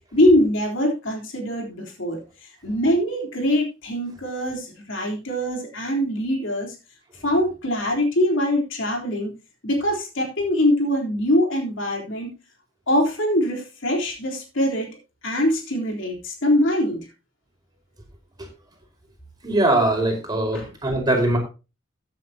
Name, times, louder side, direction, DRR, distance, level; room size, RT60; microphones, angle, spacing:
voice 1, 0.1-2.2 2.6-6.8 7.2-9.3 9.6-12.3 12.9-14.9 15.2-17.0 20.5-20.7, left 1 dB, 65° left, 0 dB, 3.7 m, -23 dB
voice 2, 19.4-21.4, right 2 dB, 20° right, 1 dB, 4.8 m, -21 dB
15.5 x 9.3 x 2.8 m, 0.30 s
head